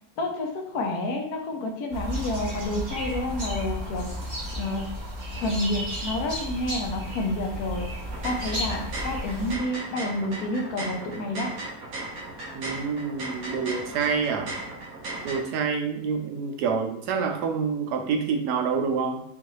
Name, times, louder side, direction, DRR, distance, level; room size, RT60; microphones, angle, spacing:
voice 1, 0.2-4.8 5.4-11.5, left 1 dB, 70° left, 3 dB, 1.2 m, -30 dB
sound 1, 1.9-9.5, equal, 30° right, 1.2 m, -33 dB
sound 2, 8.0-15.4, right 2 dB, 65° right, 1.4 m, -37 dB
voice 2, 12.5-14.5 15.2-19.2, right 5 dB, 80° right, 4 dB, 1.2 m, -27 dB
5.5 x 2.5 x 3.1 m, 0.72 s
omnidirectional pair, 1.7 m